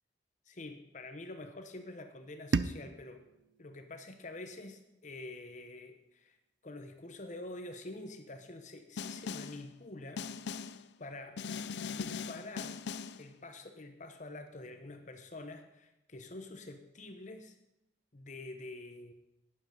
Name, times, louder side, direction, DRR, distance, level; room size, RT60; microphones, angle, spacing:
voice 1, 0.5-3.2 3.6-6.4 6.6-10.3 11.0-11.4 11.9-12.8 13.2-17.5 18.1-19.1, left 2 dB, 45° left, 7 dB, 1.0 m, -47 dB
sound 1, 2.5-5.4, right 4 dB, 80° right, 0.5 m, -38 dB
Snare drum, 9.0-9.6 10.2-10.8 11.4-13.2, left 5 dB, 70° left, 0.5 m, -40 dB
12.0 x 9.9 x 5.4 m, 0.89 s
head